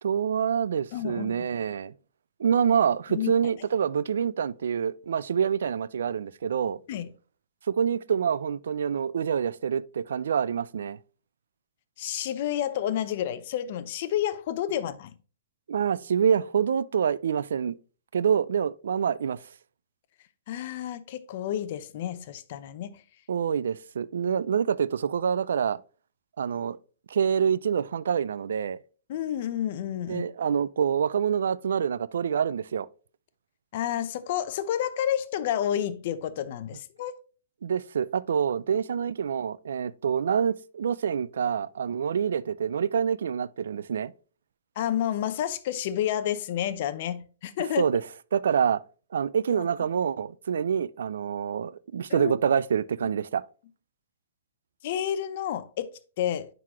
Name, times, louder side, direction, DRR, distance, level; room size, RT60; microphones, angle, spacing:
voice 1, 0.0-1.9 2.4-6.8 7.7-11.0 15.7-17.7 18.1-19.4 23.3-25.8 26.4-26.8 27.1-28.8 30.1-32.9 37.6-44.1 47.8-48.0 48.3-48.8 49.1-53.4, right 7 dB, 80° right, 0.3 m, -26 dB
voice 2, 0.9-1.5 3.1-3.3 6.9-7.1 12.0-15.1 20.5-23.0 29.1-30.2 33.7-37.2 44.8-47.8 49.5-49.7 52.1-52.3 53.0-53.1 54.8-55.9 56.2-56.5, left 10 dB, 45° left, 0.6 m, -30 dB
9.5 x 3.9 x 2.8 m
hypercardioid pair, 165°, 0 cm